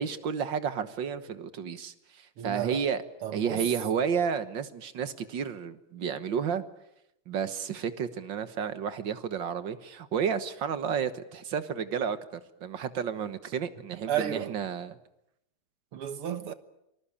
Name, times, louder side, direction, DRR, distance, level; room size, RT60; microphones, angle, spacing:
voice 1, 0.0-3.0 3.3-6.6 7.3-14.9, right 7 dB, 60° right, 1.9 m, -31 dB
voice 2, 2.4-2.9 3.2-3.7 14.1-14.6 15.9-16.5, right 9 dB, 85° right, 2.3 m, -32 dB
26.5 x 20.5 x 8.6 m
omnidirectional pair, 2.4 m